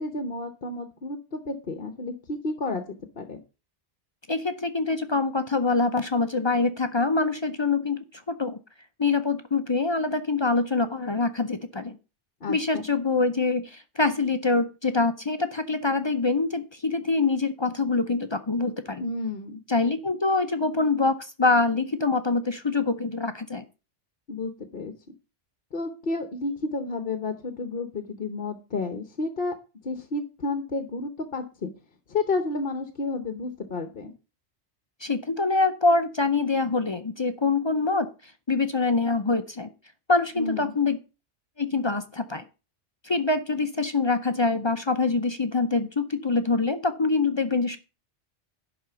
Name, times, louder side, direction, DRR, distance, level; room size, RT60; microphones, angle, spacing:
voice 1, 0.0-3.4 12.4-12.8 19.0-19.6 24.3-24.9 25.7-29.5 29.8-31.7 32.1-34.1 40.4-40.7, left 3 dB, 55° left, 8 dB, 1.2 m, -31 dB
voice 2, 4.3-8.6 9.0-12.0 12.5-19.0 19.7-23.6 35.0-38.1 38.5-39.7 40.1-41.0 41.6-42.4 43.0-47.8, left 3 dB, 30° left, 10 dB, 0.5 m, -25 dB
11.0 x 4.2 x 6.9 m, 0.31 s
omnidirectional pair, 1.2 m